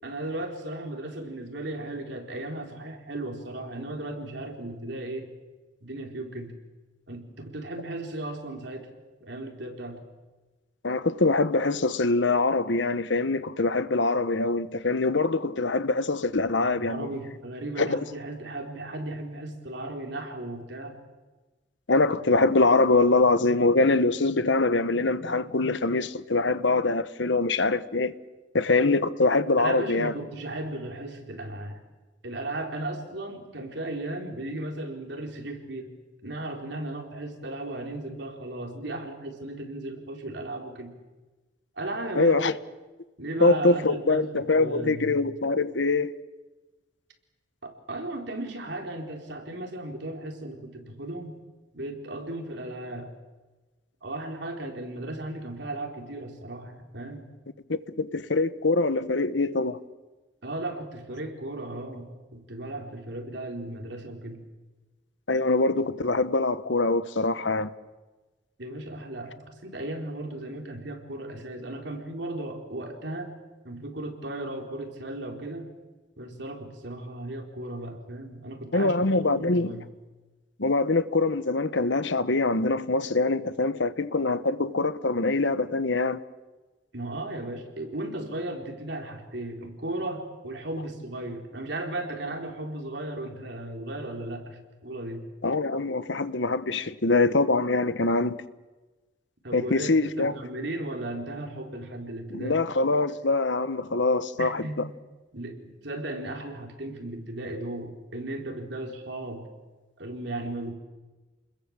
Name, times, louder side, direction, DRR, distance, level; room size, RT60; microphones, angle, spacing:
voice 1, 0.0-5.3 5.8-6.6 7.1-8.9 9.2-10.0 16.6-21.0 21.9-22.2 29.6-31.8 32.2-35.9 36.2-40.9 41.8-42.4 43.2-45.2 47.6-51.4 51.7-53.1 54.0-57.3 60.4-64.4 68.6-73.4 73.6-75.7 76.2-79.9 86.9-95.3 99.4-102.6 104.4-104.8 105.3-109.5 110.0-110.7, right 1 dB, 65° right, 4.5 m, -36 dB
voice 2, 10.8-17.1 17.8-18.0 21.9-28.1 28.5-30.1 42.2-42.6 43.4-46.1 57.7-59.8 65.3-67.7 78.7-79.8 80.6-86.2 95.4-98.4 99.5-100.3 102.3-104.9, left 3 dB, 70° left, 1.2 m, -24 dB
30.0 x 21.5 x 7.6 m
head